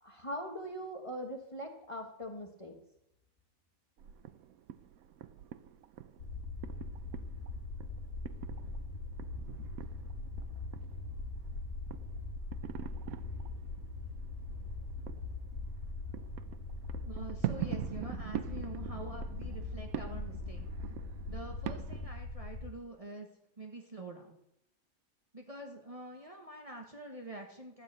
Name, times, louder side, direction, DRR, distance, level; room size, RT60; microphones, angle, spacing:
voice 1, 0.0-2.8, equal, 25° left, 3 dB, 1.2 m, -41 dB
sound 1, 4.0-22.1, right 12 dB, 85° right, 1.1 m, -44 dB
sound 2, 6.2-22.7, left 3 dB, 80° left, 2.1 m, -41 dB
voice 2, 17.1-20.6 21.3-23.3 23.6-24.4 25.3-27.8, right 2 dB, 25° right, 1 dB, 1.2 m, -46 dB
12.5 x 5.6 x 8.0 m, 0.81 s
omnidirectional pair, 1.5 m